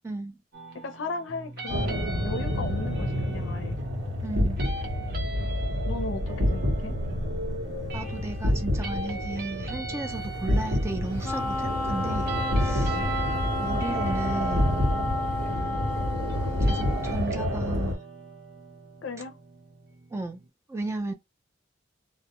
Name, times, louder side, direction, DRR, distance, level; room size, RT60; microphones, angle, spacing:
voice 1, 0.0-0.4 4.2-4.6 7.9-13.0 13.6-14.9 16.6-18.0 20.1-20.4 20.7-21.1, right 2 dB, 15° right, 0.3 m, -34 dB
sound 1, 0.5-20.5, right 3 dB, 50° right, 0.7 m, -40 dB
voice 2, 0.7-3.8 5.9-7.0 10.5-10.7 12.7-13.1 15.4-15.8 19.0-19.4, left 3 dB, 75° left, 0.5 m, -36 dB
sound 2, 1.7-17.9, left 1 dB, 80° right, 0.9 m, -28 dB
Wind instrument woodwind instrument, 11.2-17.3, left 2 dB, 10° left, 0.8 m, -32 dB
2.2 x 2.1 x 2.8 m
head